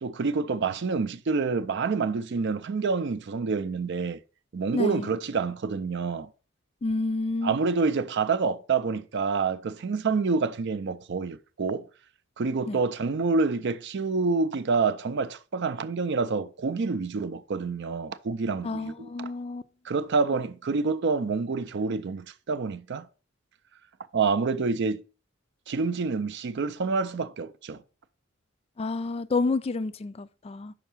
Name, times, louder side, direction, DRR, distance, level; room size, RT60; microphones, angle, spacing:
voice 1, 0.0-4.2 4.5-6.3 7.4-11.9 12.4-19.3 19.9-23.1 24.1-25.0 25.7-27.8, right 4 dB, 60° right, 0.5 m, -27 dB
voice 2, 4.7-5.1 6.8-7.5 12.7-12.8 18.6-19.6 28.8-30.7, left 3 dB, 30° left, 0.3 m, -29 dB
5.8 x 4.6 x 5.7 m
head